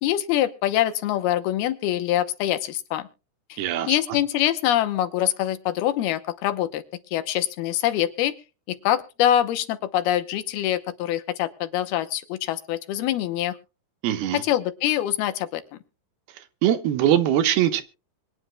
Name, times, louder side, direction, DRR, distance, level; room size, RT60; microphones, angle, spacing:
voice 1, 0.0-3.1 3.5-6.8 7.1-8.3 8.7-13.6 14.3-15.6, left 12 dB, 75° left, 2.8 m, -24 dB
voice 2, 3.6-4.0 14.0-14.4 16.4-17.8, right 11 dB, 75° right, 3.0 m, -22 dB
24.0 x 9.7 x 2.3 m
omnidirectional pair, 4.6 m